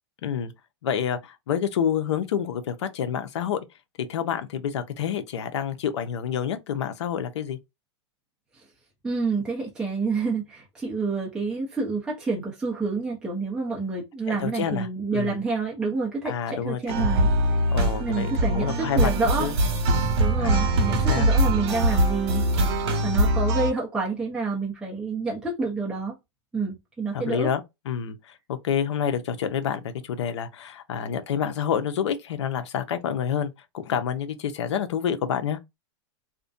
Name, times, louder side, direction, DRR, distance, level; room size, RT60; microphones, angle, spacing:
voice 1, 0.2-0.5 0.8-3.6 4.1-7.6 14.3-14.9 15.1-15.4 16.2-17.1 17.7-19.1 19.4-19.6 20.4-21.3 27.1-35.6, left 8 dB, 75° left, 0.6 m, -28 dB
voice 2, 9.0-17.7 18.0-19.5 20.2-22.5 23.0-26.2 26.5-27.5, right 4 dB, 5° right, 0.6 m, -28 dB
sound 1, 16.9-23.7, right 1 dB, 60° right, 1.1 m, -22 dB
2.5 x 2.1 x 2.5 m
hypercardioid pair, 140°, 15 cm